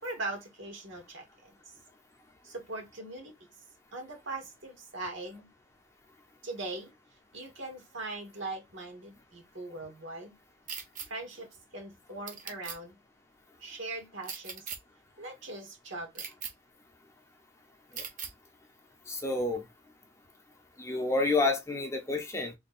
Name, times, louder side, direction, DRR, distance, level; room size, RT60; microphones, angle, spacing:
voice 1, 0.0-1.5 2.4-3.3 3.9-5.5 6.4-6.9 7.3-10.3 11.1-13.0 13.6-14.7 15.2-16.2, right 2 dB, 70° right, 1.6 m, -40 dB
sound 1, 10.7-11.1 12.3-12.8 14.2-14.8 16.2-16.5 18.0-18.3, right 6 dB, 40° right, 0.7 m, -39 dB
voice 2, 19.1-19.6 20.8-22.5, left 3 dB, 15° left, 0.6 m, -29 dB
3.3 x 2.3 x 4.1 m
head